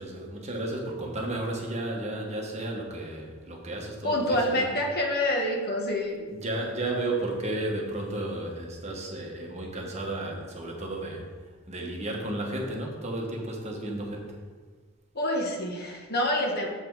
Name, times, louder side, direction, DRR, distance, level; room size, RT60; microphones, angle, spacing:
voice 1, 0.0-4.7 6.3-14.4, right 1 dB, 30° right, 0 dB, 1.2 m, -33 dB
voice 2, 4.0-6.2 15.1-16.7, left 1 dB, 45° left, 0 dB, 1.3 m, -27 dB
7.4 x 6.0 x 4.6 m, 1.5 s
head